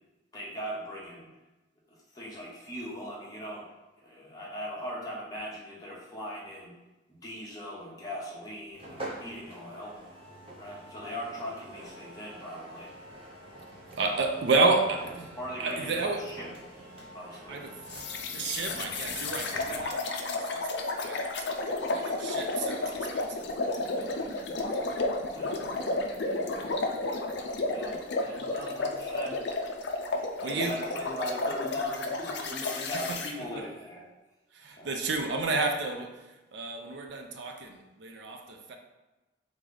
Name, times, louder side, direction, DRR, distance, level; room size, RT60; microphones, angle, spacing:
voice 1, 0.3-1.3 2.1-3.7 4.0-6.7 7.1-9.9 10.6-12.9 15.3-16.5 16.8-17.6 19.7-19.8 25.3-25.6 27.7-29.4 30.1-34.0 34.8-34.9, equal, 20° left, -5 dB, 1.0 m, -39 dB
sound 1, 8.7-20.0, right 1 dB, 30° right, 0.7 m, -46 dB
voice 2, 13.9-16.3 17.5-17.8 18.3-23.4 28.2-28.4 30.4-30.8 32.6-32.7 33.1-33.2 33.5-33.7 34.5-38.8, right 3 dB, 65° right, 4 dB, 0.5 m, -31 dB
sound 2, 17.9-33.3, left 2 dB, 60° left, 0.4 m, -32 dB
3.6 x 3.2 x 3.8 m, 1.1 s
head